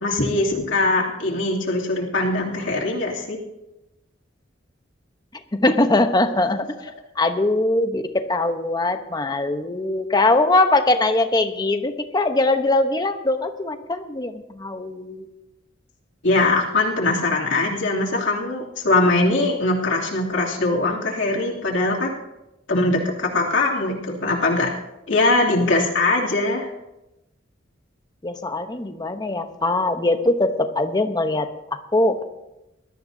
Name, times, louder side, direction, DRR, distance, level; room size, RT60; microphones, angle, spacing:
voice 1, 0.0-3.4 16.2-22.1 22.7-24.7 25.1-26.7, left 2 dB, 75° left, -3 dB, 2.8 m, -21 dB
voice 2, 5.5-6.7 7.2-15.3 28.2-31.5 31.9-32.2, left 2 dB, 20° left, 7 dB, 0.9 m, -21 dB
20.5 x 13.0 x 2.7 m, 0.93 s
head